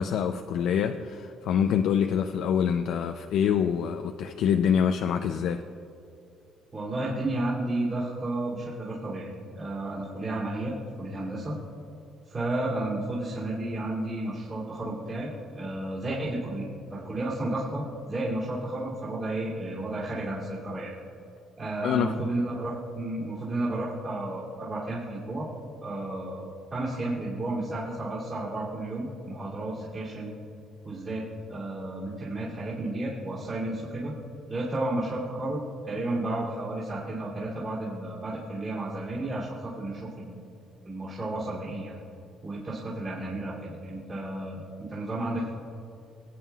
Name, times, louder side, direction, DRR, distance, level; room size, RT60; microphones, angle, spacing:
voice 1, 0.0-5.6 21.8-22.1, left 8 dB, 70° left, 6 dB, 0.4 m, -25 dB
voice 2, 6.7-9.3 9.5-11.6 12.3-20.9 21.6-25.5 25.8-30.3 30.8-34.1 34.5-40.4 40.8-42.0 42.4-45.6, right 2 dB, 30° right, -8 dB, 2.8 m, -32 dB
22.5 x 9.2 x 2.4 m, 2.6 s
cardioid pair, 145°, 0 cm